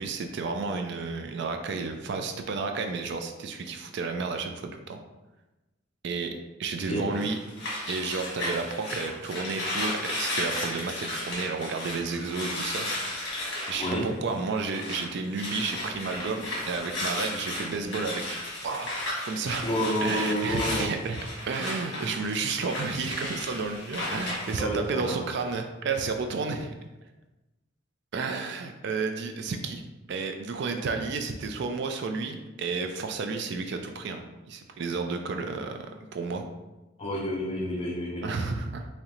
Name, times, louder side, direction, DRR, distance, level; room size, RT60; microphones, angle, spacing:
voice 1, 0.0-5.0 6.0-6.3 6.6-7.4 7.9-12.9 13.2-18.9 19.2-19.6 20.0-21.2 21.5-26.7 28.1-29.8 30.1-36.4 38.2-38.9, right 4 dB, 60° right, 6 dB, 0.4 m, -32 dB
sound 1, 7.1-15.1 15.3-24.6, left 1 dB, 60° left, 1.3 m, -34 dB
voice 2, 19.6-20.9 24.6-25.3 37.0-38.2, equal, 30° left, -2 dB, 0.8 m, -29 dB
3.7 x 3.1 x 3.0 m, 1.1 s
head